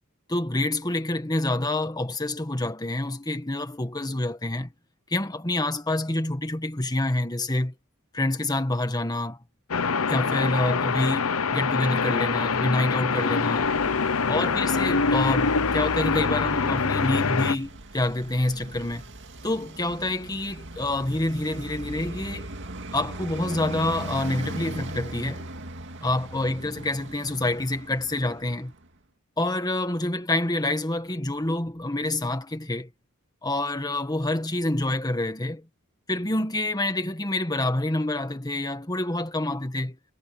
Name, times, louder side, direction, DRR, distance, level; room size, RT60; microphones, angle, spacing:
voice 1, 0.3-4.7 5.1-7.7 8.1-9.4 10.1-13.7 14.3-19.0 19.4-22.5 22.9-25.5 26.0-28.7 29.4-32.9 33.4-35.7 36.1-40.0, left 2 dB, 20° left, 1.7 m, -27 dB
sound 1, 9.7-17.5, left 5 dB, 75° left, 0.8 m, -24 dB
Traffic noise roadway noise, 13.4-28.9, right 1 dB, 55° right, 2.3 m, -39 dB
head